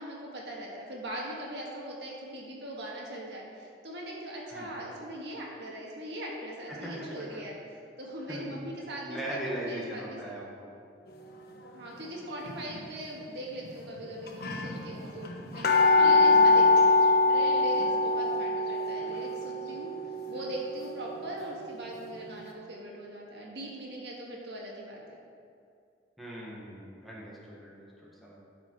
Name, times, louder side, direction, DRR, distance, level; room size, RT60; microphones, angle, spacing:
voice 1, 0.0-7.5 8.0-10.5 11.7-16.9 17.3-19.9 20.3-25.2, equal, 65° right, -3 dB, 1.7 m, -40 dB
voice 2, 9.0-10.7 26.2-28.4, right 1 dB, ahead, -6 dB, 1.5 m, -39 dB
sound 1, 12.5-12.8 13.6-13.7 14.0-14.1 14.3-21.9 22.3-22.4, left 3 dB, 55° left, 1.0 m, -24 dB
12.0 x 5.0 x 4.7 m, 2.4 s
head